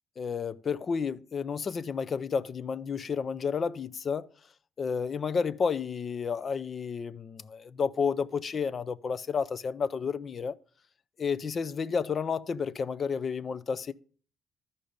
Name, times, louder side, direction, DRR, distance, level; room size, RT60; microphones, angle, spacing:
voice 1, 0.2-4.3 4.8-10.5 11.2-13.9, left 6 dB, 35° left, 0.5 m, -31 dB
13.0 x 5.5 x 5.1 m
cardioid pair, 155°, 0 cm